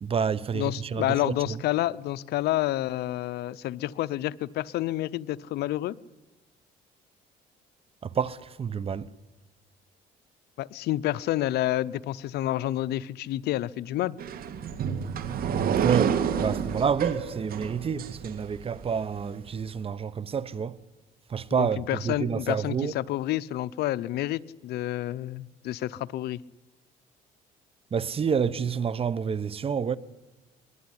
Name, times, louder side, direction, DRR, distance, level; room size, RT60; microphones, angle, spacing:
voice 1, 0.0-1.6 8.0-9.1 15.8-20.8 21.3-22.9 27.9-30.0, right 6 dB, 35° right, 1.0 m, -29 dB
voice 2, 0.5-5.9 10.6-14.2 21.5-26.4, left 14 dB, 75° left, 0.7 m, -29 dB
sound 1, 14.2-18.9, right 8 dB, 60° right, 2.1 m, -29 dB
22.5 x 20.5 x 9.9 m
cardioid pair, 110°, 17 cm